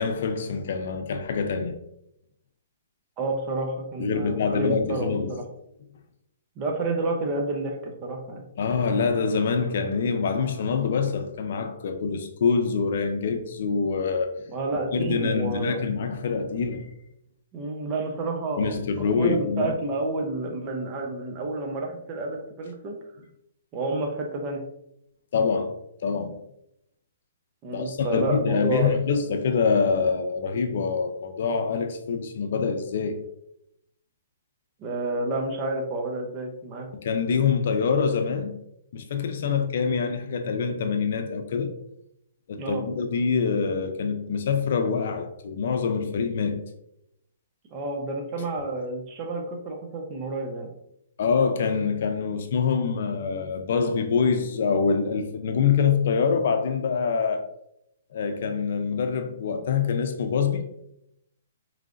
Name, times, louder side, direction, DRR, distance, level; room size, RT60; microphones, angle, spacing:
voice 1, 0.0-1.8 4.0-5.3 8.6-14.4 14.9-16.9 18.6-19.7 25.3-26.4 27.7-33.2 36.9-38.5 38.9-41.7 42.5-46.6 51.2-57.5 58.1-60.7, left 5 dB, 60° left, 0.5 m, -25 dB
voice 2, 3.2-5.4 6.6-8.4 14.5-15.8 17.5-18.7 19.2-23.0 23.7-24.6 27.6-28.9 34.8-36.9 39.4-39.7 42.6-42.8 47.7-50.7, right 2 dB, 30° right, 0.7 m, -30 dB
4.8 x 3.2 x 2.5 m
hypercardioid pair, 150°, 0 cm